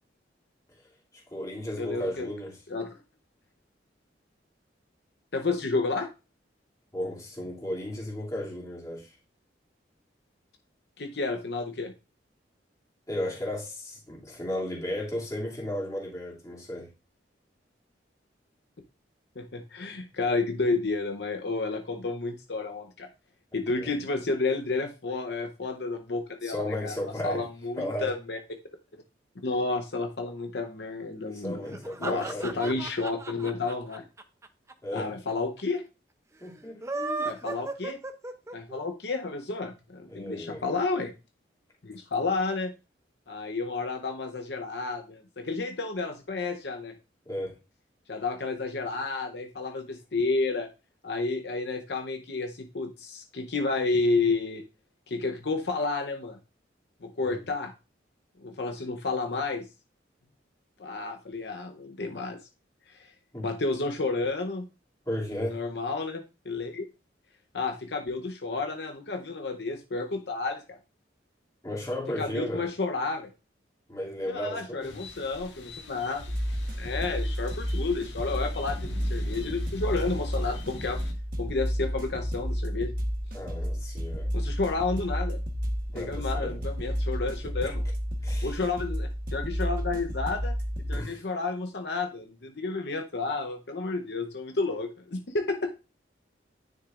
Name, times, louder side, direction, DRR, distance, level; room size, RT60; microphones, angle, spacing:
voice 1, 1.1-2.6 6.9-9.2 13.1-16.9 23.8-23.9 26.4-27.4 27.8-28.1 31.3-32.8 34.8-35.1 36.4-37.5 40.1-40.7 47.3-47.6 57.2-57.4 63.3-63.5 65.1-65.6 71.6-72.7 73.9-75.0 83.3-84.3 85.9-86.6 88.2-88.6 90.9-91.2, left 1 dB, 20° left, 2.5 m, -35 dB
voice 2, 1.8-2.3 2.7-3.0 5.3-6.1 11.0-11.9 19.4-23.1 23.5-27.0 27.2-28.4 29.4-31.6 32.0-34.0 34.9-35.8 37.3-38.0 38.5-41.1 41.8-42.7 43.3-46.9 48.1-50.7 51.0-54.6 55.1-56.4 57.0-57.7 58.4-59.6 60.8-62.4 62.9-63.1 63.4-64.7 65.5-66.9 67.5-70.8 72.2-73.3 74.3-76.2 76.8-78.8 79.1-81.0 81.4-82.9 84.3-85.4 85.9-87.8 88.4-90.5 90.9-95.7, left 3 dB, 65° left, 0.8 m, -31 dB
sound 1, 31.7-35.0 35.3-35.4 35.6-35.7 36.7-38.8, right 3 dB, 15° right, 0.6 m, -35 dB
sound 2, 74.8-81.1, left 2 dB, 80° left, 1.7 m, -45 dB
sound 3, 76.2-91.0, equal, 50° right, 1.1 m, -31 dB
9.8 x 6.4 x 2.5 m
head